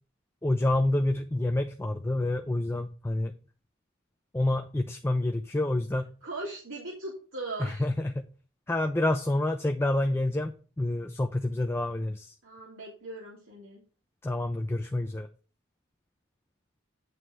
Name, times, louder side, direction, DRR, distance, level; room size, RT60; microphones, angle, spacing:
voice 1, 0.4-3.3 4.3-6.1 7.6-8.2 8.7-12.3 14.2-15.3, left 1 dB, 10° left, 5 dB, 0.4 m, -28 dB
voice 2, 6.2-7.8 12.4-13.8, right 2 dB, 75° right, -3 dB, 1.9 m, -39 dB
9.5 x 3.3 x 6.0 m, 0.39 s
head